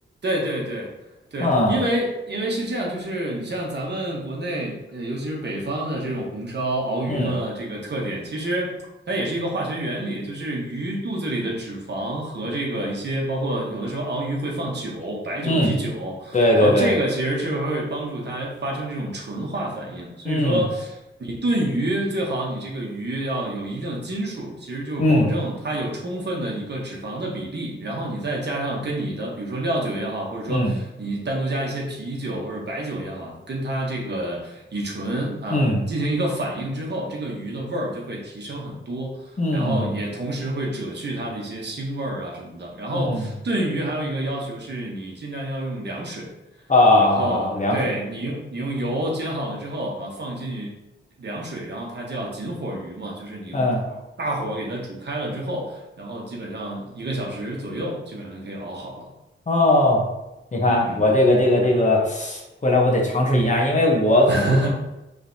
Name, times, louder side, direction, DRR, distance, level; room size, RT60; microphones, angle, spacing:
voice 1, 0.2-0.9 1.3-8.7 9.1-46.3 47.0-50.7 51.2-59.1 60.6-61.0 64.3-64.7, right 1 dB, 55° right, -2 dB, 1.1 m, -28 dB
voice 2, 1.4-1.8 7.1-7.3 15.4-15.7 16.3-16.9 20.2-20.6 25.0-25.3 30.5-30.7 35.5-35.8 39.4-39.9 42.9-43.3 46.7-47.8 53.5-53.8 59.5-60.0 60.5-64.7, left 1 dB, 35° left, -1 dB, 1.0 m, -19 dB
5.0 x 3.4 x 2.8 m, 0.96 s
wide cardioid pair, 125°, 21 cm